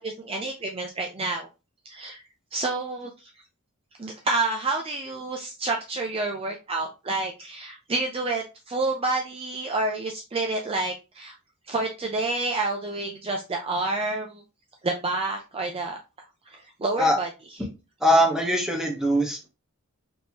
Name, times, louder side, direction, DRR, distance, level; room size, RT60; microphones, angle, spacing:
voice 1, 0.0-1.5 1.9-2.2 2.5-3.1 4.0-11.3 11.7-14.4 14.8-16.0 16.5-17.6, right 2 dB, 25° right, 1 dB, 0.5 m, -29 dB
voice 2, 18.0-19.5, equal, 5° right, 0 dB, 1.2 m, -21 dB
4.3 x 3.3 x 2.9 m, 0.29 s
head